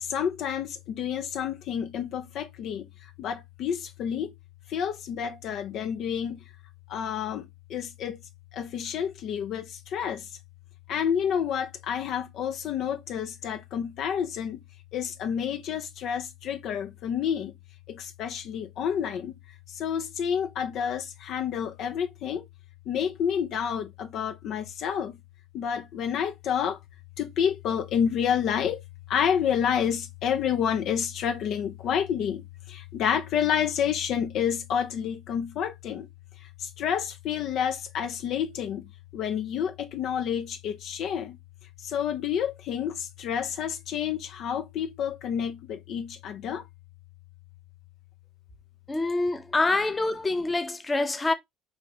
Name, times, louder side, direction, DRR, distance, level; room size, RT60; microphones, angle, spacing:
voice 1, 0.0-4.3 4.7-6.4 6.9-8.2 8.5-10.4 10.9-14.6 14.9-17.6 17.9-19.3 19.7-22.5 22.9-25.2 25.5-26.8 27.2-28.8 29.1-36.1 36.6-41.4 41.8-46.6, left 8 dB, 65° left, 0.5 m, -29 dB
voice 2, 48.9-51.3, left 2 dB, 20° left, 0.7 m, -26 dB
4.8 x 2.6 x 2.9 m
cardioid pair, 105°, 0 cm